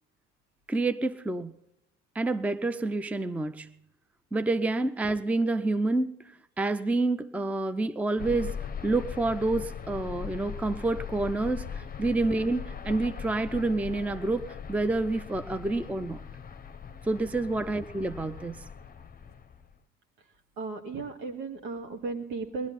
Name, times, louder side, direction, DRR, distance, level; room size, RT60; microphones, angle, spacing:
voice 1, 0.7-1.5 2.1-3.7 4.3-6.1 6.6-8.6 8.8-16.2 17.1-18.6, right 2 dB, 5° right, 0.6 m, -28 dB
sound 1, 8.2-19.8, left 7 dB, 25° left, 0.9 m, -40 dB
voice 2, 20.6-22.7, right 4 dB, 70° right, 2.2 m, -36 dB
20.0 x 11.5 x 4.2 m
hypercardioid pair, 55°, 39 cm